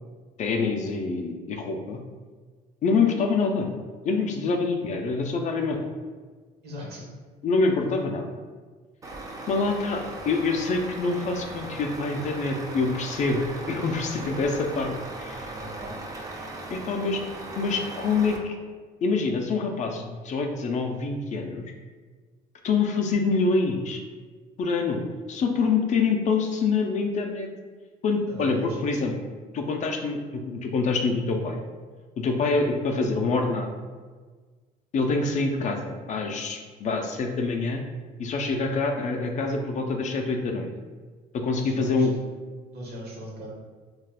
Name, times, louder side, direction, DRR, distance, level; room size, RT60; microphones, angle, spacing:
voice 1, 0.4-2.0 2.8-3.7 4.1-5.9 7.4-8.4 9.5-15.5 16.7-17.2 17.6-18.6 19.0-21.7 22.6-24.0 24.6-25.0 25.3-27.5 28.0-29.1 29.5-31.6 32.2-33.7 34.9-37.8 38.2-40.7 41.3-42.2, left 4 dB, 45° left, 3 dB, 0.4 m, -26 dB
voice 2, 6.6-7.1 15.4-16.0 28.3-29.1 41.4-42.1 42.7-43.5, equal, 70° right, -3 dB, 0.9 m, -39 dB
Truck, 9.0-18.4, right 2 dB, 20° right, 0.4 m, -38 dB
2.3 x 2.3 x 3.4 m, 1.4 s
cardioid pair, 110°, 17 cm